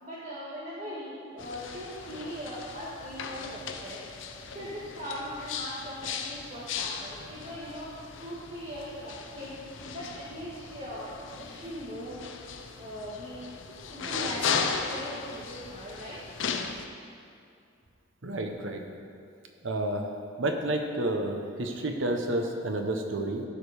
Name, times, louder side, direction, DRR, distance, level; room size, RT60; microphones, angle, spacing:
voice 1, 0.0-4.0 4.5-7.9 8.2-9.5 9.9-12.2 12.8-13.4 13.7-16.2, equal, 40° right, -8 dB, 1.5 m, -40 dB
sound 1, 1.4-16.8, left 5 dB, 75° left, 0.7 m, -37 dB
voice 2, 18.2-18.8 19.6-20.1 20.4-23.4, right 1 dB, 75° right, 4 dB, 1.0 m, -30 dB
15.0 x 5.1 x 5.0 m, 2.4 s
head